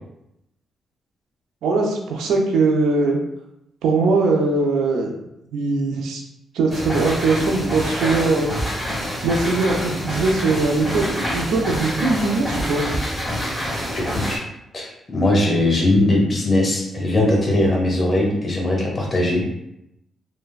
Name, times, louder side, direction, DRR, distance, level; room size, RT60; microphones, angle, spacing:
voice 1, 1.6-3.2 3.8-5.1 5.5-6.2 6.5-8.5 9.2-12.8, right 3 dB, 85° right, 1 dB, 0.4 m, -20 dB
sound 1, 6.7-14.4, equal, ahead, 1.1 m, -26 dB
voice 2, 13.9-14.4 14.7-19.4, left 1 dB, 35° left, -1 dB, 0.9 m, -20 dB
3.2 x 2.0 x 2.3 m, 0.83 s
cardioid pair, 65°, 0 cm